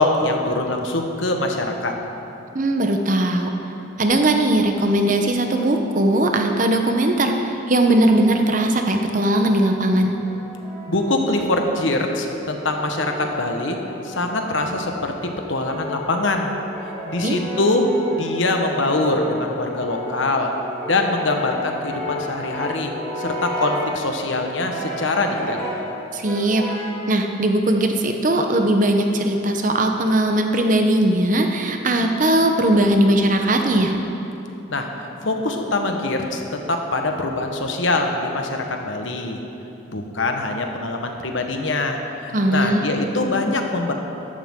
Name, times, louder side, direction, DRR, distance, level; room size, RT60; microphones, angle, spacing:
voice 1, 0.0-1.9 10.9-13.8 14.0-16.5 17.1-20.5 20.9-25.7 34.7-34.9 35.2-39.4 39.9-43.9, left 2 dB, 70° left, 3 dB, 1.2 m, -23 dB
voice 2, 2.5-3.5 4.0-10.1 17.2-17.4 26.1-26.6 27.1-34.0 42.3-42.8, right 1 dB, 40° right, 4 dB, 0.8 m, -19 dB
Brass instrument, 10.2-11.9 12.6-14.7 15.3-24.0 24.6-25.9 26.2-27.1, equal, 10° left, 2.1 m, -33 dB
14.0 x 11.5 x 3.7 m, 2.9 s
head